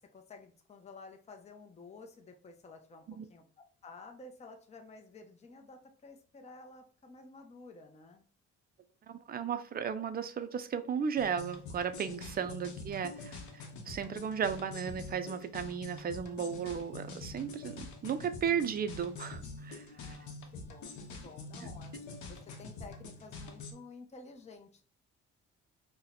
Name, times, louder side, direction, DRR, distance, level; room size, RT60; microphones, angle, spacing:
voice 1, 0.1-3.4 3.8-8.2 12.3-12.4 19.9-24.8, left 3 dB, 20° left, 4 dB, 0.5 m, -52 dB
voice 2, 9.1-20.2, right 7 dB, 30° right, 10 dB, 0.4 m, -35 dB
sound 1, 11.2-23.7, left 3 dB, 75° left, 0.7 m, -46 dB
2.8 x 2.1 x 3.9 m, 0.42 s
cardioid pair, 90°, 30 cm